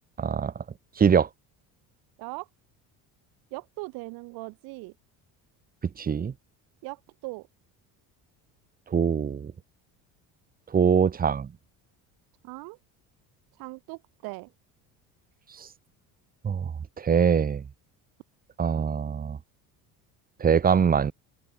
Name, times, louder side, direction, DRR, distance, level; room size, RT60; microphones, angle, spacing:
voice 1, 0.2-0.6 1.0-1.3 6.0-6.3 8.9-9.5 10.7-11.5 15.6-15.7 16.4-16.7 17.0-17.6 18.6-19.4 20.4-21.1, right 7 dB, 25° right, 2.1 m, -23 dB
voice 2, 3.5-4.9 6.8-7.5 12.4-12.8 13.6-14.5, right 26 dB, 80° right, 3.8 m, -39 dB
cardioid pair, 150°, 36 cm